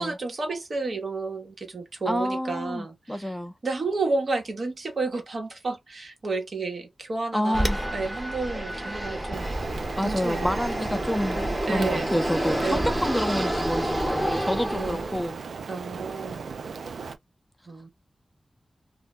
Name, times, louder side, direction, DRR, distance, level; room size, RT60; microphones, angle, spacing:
voice 1, 0.0-3.3 3.6-7.7 7.9-9.6 10.0-10.6 10.9-11.1 11.7-12.2 12.6-13.0 14.7-15.0 15.7-16.4 17.7-17.9, right 3 dB, 70° right, 1.0 m, -31 dB
voice 2, 2.1-3.5 7.3-7.8 10.0-15.4, equal, ahead, 0.5 m, -28 dB
Fixed-wing aircraft airplane, 7.5-15.3, right 1 dB, 20° right, 0.8 m, -29 dB
Rain, 9.3-17.2, right 5 dB, 90° right, 0.3 m, -37 dB
2.2 x 2.2 x 3.6 m
cardioid pair, 50°, 0 cm